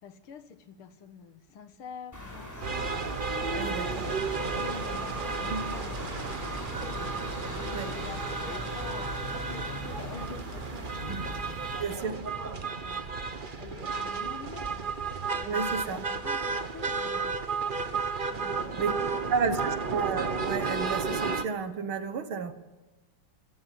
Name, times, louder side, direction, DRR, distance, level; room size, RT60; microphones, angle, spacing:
voice 1, 0.0-3.1 3.5-12.4 12.8-14.9 15.4-17.3 18.3-19.4, left 6 dB, 75° left, 12 dB, 2.3 m, -47 dB
sound 1, 2.1-11.8, left 1 dB, 5° left, 4.8 m, -41 dB
sound 2, 2.6-21.4, right 4 dB, 30° right, 1.0 m, -33 dB
voice 2, 3.5-4.1 5.5-5.6 7.7-7.9 11.1-11.2 11.7-12.2 15.5-16.0 18.8-18.9 19.3-22.5, right 5 dB, 70° right, 11 dB, 2.2 m, -32 dB
26.0 x 14.5 x 9.2 m, 1.1 s
omnidirectional pair, 2.4 m